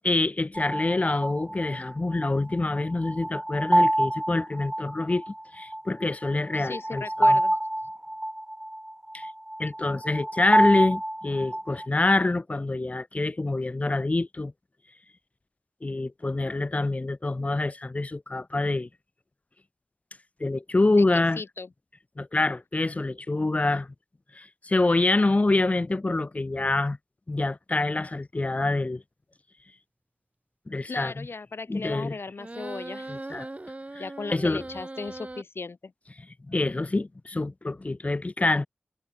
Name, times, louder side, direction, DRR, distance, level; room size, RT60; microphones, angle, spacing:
voice 1, 0.0-7.4 9.1-9.3 9.6-14.5 15.8-18.9 20.4-21.4 22.2-23.9 24.4-27.0 27.3-29.0 30.7-31.3 31.7-32.1 33.1-33.5 33.9-34.0 34.3-34.6 36.5-38.7, left 2 dB, 35° left, 0.4 m, -26 dB
sound 1, 0.5-11.9, right 1 dB, 10° right, 1.2 m, -27 dB
voice 2, 6.5-7.6 20.9-21.7 30.7-33.2 34.0-35.9, left 4 dB, 70° left, 1.1 m, -37 dB
sound 2, 32.4-35.4, right 2 dB, 35° right, 1.8 m, -39 dB
cardioid pair, 45°, 4 cm